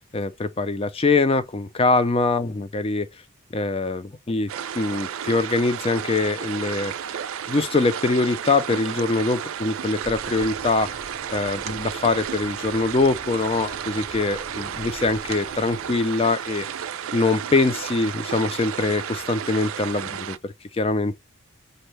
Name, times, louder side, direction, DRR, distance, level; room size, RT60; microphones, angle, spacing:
voice 1, 0.1-3.1 3.5-4.5 4.7-6.9 7.5-10.9 11.3-16.7 17.1-20.4 20.7-21.2, left 3 dB, 25° left, 0.4 m, -23 dB
sound 1, 4.5-20.4, right 9 dB, 80° right, 0.4 m, -33 dB
sound 2, 10.0-16.0, right 3 dB, 30° right, 0.6 m, -42 dB
5.3 x 2.1 x 3.1 m
head